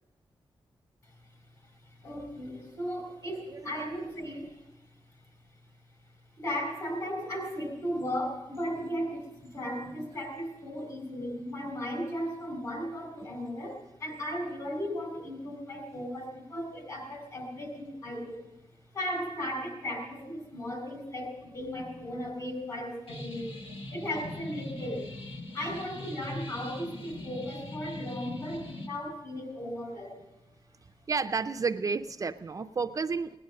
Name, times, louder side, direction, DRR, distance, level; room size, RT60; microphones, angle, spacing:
voice 1, 1.6-4.7 6.4-18.5 18.9-23.6 23.9-25.1 25.5-30.2, equal, 40° left, 4 dB, 4.6 m, -36 dB
sound 1, 23.1-28.9, left 1 dB, 75° left, 1.7 m, -41 dB
voice 2, 31.1-33.4, right 4 dB, 35° right, 8 dB, 0.4 m, -31 dB
18.5 x 10.5 x 6.6 m, 1.0 s
wide cardioid pair, 135°, 9 cm